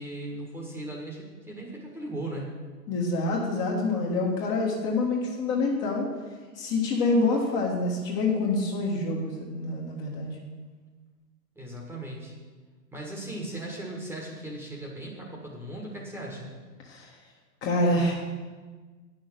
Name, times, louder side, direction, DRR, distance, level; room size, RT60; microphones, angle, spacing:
voice 1, 0.0-2.5 11.5-12.4 12.9-16.5, right 1 dB, 5° right, -2 dB, 1.5 m, -37 dB
voice 2, 2.9-6.1 6.5-10.4 16.9-17.1 17.6-18.1, left 2 dB, 25° left, -2 dB, 1.5 m, -26 dB
9.6 x 6.4 x 7.8 m, 1.4 s
figure-of-eight pair, 115°, 49 cm